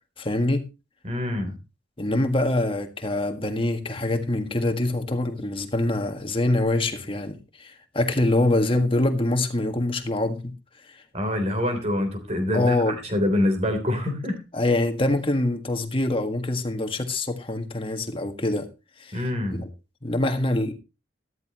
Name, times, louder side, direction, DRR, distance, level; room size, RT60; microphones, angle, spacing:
voice 1, 0.2-0.7 2.0-10.5 10.9-11.0 12.5-13.0 14.5-18.7 19.0-19.2 19.5-19.7 20.0-20.7, left 1 dB, 30° left, 1.6 m, -24 dB
voice 2, 1.0-1.6 11.1-14.4 19.1-19.6, left 1 dB, 35° right, 3.4 m, -25 dB
13.5 x 13.0 x 2.9 m
head